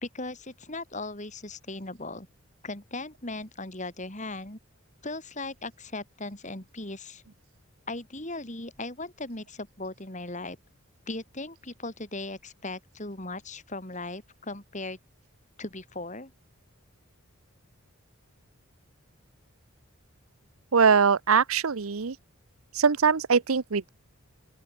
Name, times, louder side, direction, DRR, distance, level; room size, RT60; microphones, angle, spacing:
voice 1, 0.0-2.3 2.6-4.6 5.0-7.2 7.9-10.6 11.1-15.0 15.6-16.3, left 2 dB, 35° left, 4.7 m, -38 dB
voice 2, 20.7-22.1 22.7-23.9, right 5 dB, 80° right, 0.8 m, -22 dB
open air
head